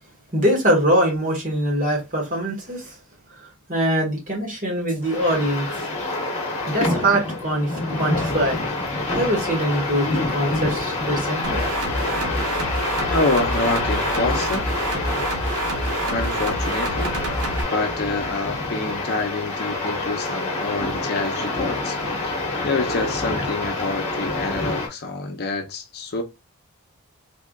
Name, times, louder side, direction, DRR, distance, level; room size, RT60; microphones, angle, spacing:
voice 1, 0.3-3.0 3.3-5.7 6.7-8.6 9.2-11.6, right 1 dB, 35° right, 1.7 m, -23 dB
sound 1, 5.0-24.9, left 2 dB, 30° left, 1.4 m, -27 dB
sound 2, 11.4-17.6, right 2 dB, 85° right, 1.1 m, -27 dB
voice 2, 13.1-14.7 16.1-17.1 17.7-22.0 22.2-26.2, left 3 dB, 45° left, 0.7 m, -27 dB
3.6 x 3.3 x 2.4 m
head